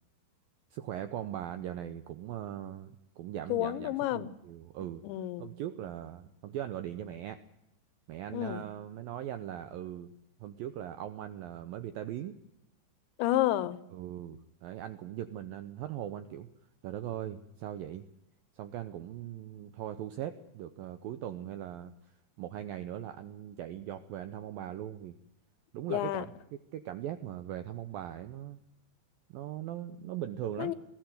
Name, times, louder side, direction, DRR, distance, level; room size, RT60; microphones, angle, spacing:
voice 1, 0.7-5.0 5.4-7.4 8.1-10.1 10.4-12.4 13.9-16.5 16.8-18.1 18.6-21.9 22.4-25.2 25.7-28.6 29.3-30.7, right 11 dB, 90° right, 10 dB, 2.0 m, -40 dB
voice 2, 3.5-4.3 5.0-5.5 8.3-8.6 13.2-13.8 25.9-26.3 30.6-30.7, left 14 dB, 80° left, 17 dB, 3.2 m, -30 dB
20.5 x 14.5 x 9.4 m, 0.83 s
omnidirectional pair, 5.4 m